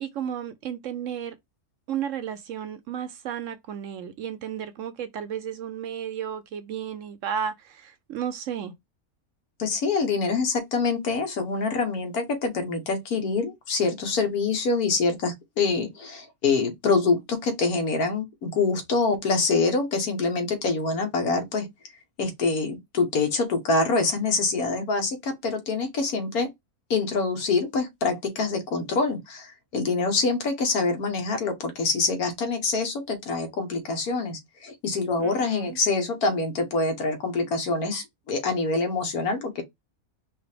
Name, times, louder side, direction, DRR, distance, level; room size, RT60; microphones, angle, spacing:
voice 1, 0.0-1.4 1.9-8.7 35.2-35.8, right 8 dB, 65° right, 0.9 m, -33 dB
voice 2, 9.6-21.7 22.2-26.5 26.9-39.6, left 4 dB, 80° left, 1.6 m, -25 dB
5.2 x 2.6 x 3.4 m
omnidirectional pair, 1.6 m